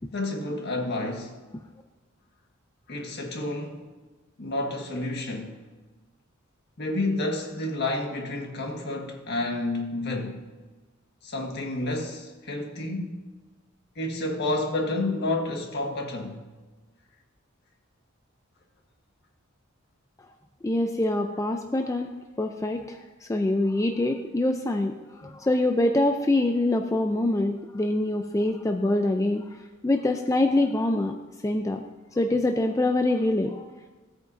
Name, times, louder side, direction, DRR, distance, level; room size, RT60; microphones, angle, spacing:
voice 1, 0.1-1.3 2.9-3.8 4.4-5.6 6.8-10.4 11.2-13.2 13.9-16.4, left 2 dB, 55° left, 1.6 m, -30 dB
voice 2, 20.6-22.1 22.4-31.2 31.4-31.8 32.2-33.9, left 2 dB, 15° left, 0.4 m, -25 dB
16.5 x 8.9 x 2.6 m
head